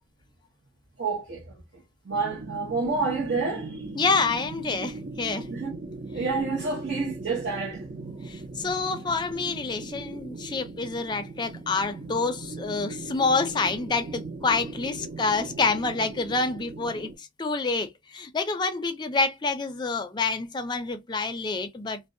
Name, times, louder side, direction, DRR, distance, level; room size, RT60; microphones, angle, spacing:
voice 1, 1.0-3.9 5.5-5.7 6.1-7.9, right 4 dB, 70° right, 0.8 m, -29 dB
sound 1, 2.1-17.2, right 3 dB, 45° right, 0.4 m, -39 dB
voice 2, 4.0-5.5 8.2-22.0, left 4 dB, 25° left, 0.3 m, -27 dB
2.5 x 2.0 x 2.5 m
head